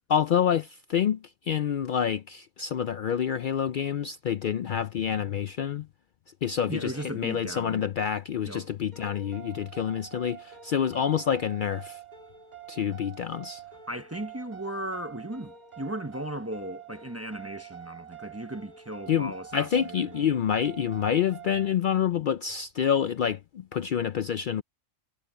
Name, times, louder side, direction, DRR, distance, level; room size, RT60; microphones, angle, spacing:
voice 1, 0.1-5.9 6.4-12.0 12.7-13.6 19.1-24.6, left 8 dB, 85° left, 0.4 m, -27 dB
voice 2, 6.7-7.9 8.5-8.7 13.9-20.3, right 1 dB, 15° right, 0.6 m, -37 dB
sound 1, 8.9-21.7, right 10 dB, 30° right, 1.8 m, -46 dB
omnidirectional pair, 1.4 m